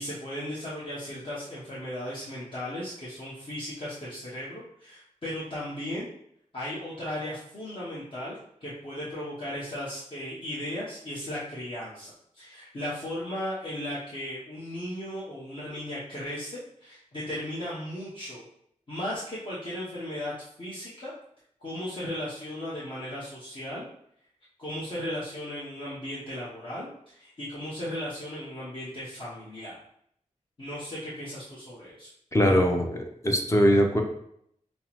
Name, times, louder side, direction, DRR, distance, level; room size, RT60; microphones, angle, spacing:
voice 1, 0.0-6.1 6.5-18.5 18.9-21.1 21.6-23.9 24.6-29.8 30.6-32.1, left 1 dB, 40° left, -8 dB, 0.9 m, -36 dB
voice 2, 32.3-34.0, equal, 25° left, 2 dB, 0.6 m, -22 dB
5.4 x 2.0 x 2.9 m, 0.71 s
wide cardioid pair, 95°, 13 cm